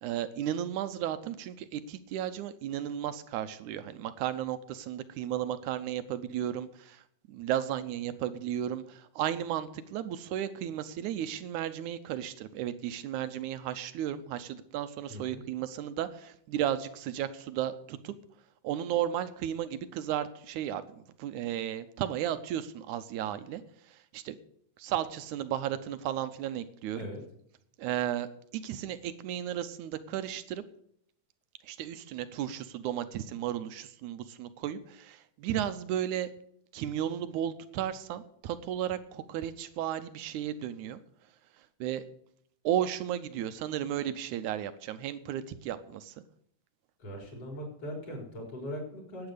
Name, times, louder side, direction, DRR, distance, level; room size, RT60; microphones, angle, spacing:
voice 1, 0.0-7.0 7.3-18.1 18.6-20.8 21.2-23.6 23.9-24.4 24.8-27.0 27.8-30.6 31.6-36.3 36.7-41.0 41.8-42.0 42.6-46.1, right 11 dB, 75° right, 12 dB, 1.9 m, -34 dB
voice 2, 15.1-15.4 26.9-27.2 47.0-49.3, equal, 45° left, 0 dB, 5.3 m, -40 dB
11.5 x 8.9 x 6.7 m, 0.69 s
omnidirectional pair, 3.9 m